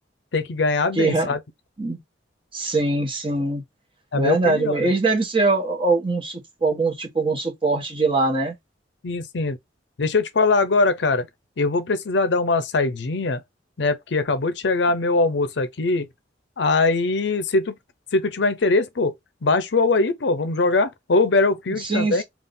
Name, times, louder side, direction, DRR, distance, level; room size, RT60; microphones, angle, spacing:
voice 1, 0.3-1.4 4.1-4.9 9.0-9.6 10.0-11.3 11.6-13.4 13.8-16.1 16.6-17.7 18.1-19.1 19.4-22.2, left 3 dB, 70° left, 0.6 m, -21 dB
voice 2, 0.9-1.3 1.8-2.0 2.5-3.6 4.1-8.5 21.8-22.2, right 3 dB, 30° right, 1.2 m, -22 dB
3.6 x 2.4 x 3.8 m
head